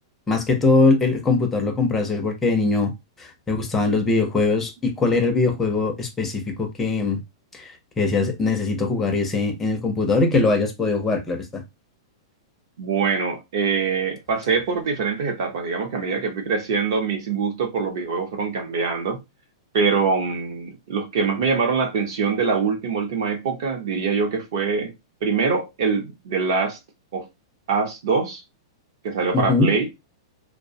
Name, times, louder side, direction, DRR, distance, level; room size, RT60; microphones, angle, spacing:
voice 1, 0.3-2.9 3.2-7.2 7.5-11.6 29.3-29.7, left 3 dB, 10° left, 0.4 m, -21 dB
voice 2, 12.8-19.2 19.7-24.9 25.2-26.8 27.1-27.3 27.7-28.4 29.0-29.9, right 5 dB, 50° right, 0.6 m, -24 dB
2.4 x 2.0 x 2.6 m
supercardioid pair, 170°, 3 cm